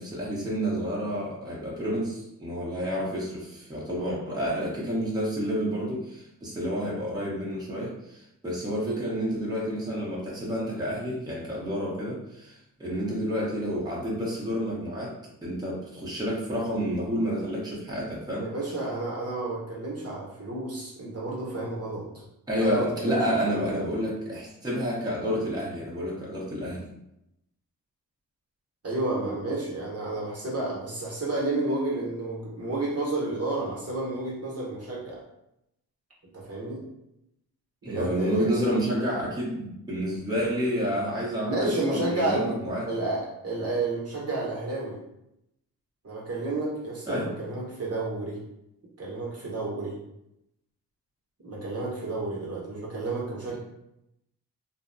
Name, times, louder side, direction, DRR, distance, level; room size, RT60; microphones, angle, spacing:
voice 1, 0.0-18.5 22.5-26.9 37.8-42.9 47.1-47.3, equal, 10° right, -5 dB, 0.8 m, -29 dB
voice 2, 18.4-22.1 22.6-23.9 28.8-35.2 36.3-36.8 37.8-38.6 41.5-42.5 42.8-45.0 46.0-48.4 49.0-50.0 51.4-53.6, right 2 dB, 35° right, -4 dB, 0.9 m, -31 dB
2.5 x 2.1 x 2.5 m, 0.83 s
supercardioid pair, 45°, 41 cm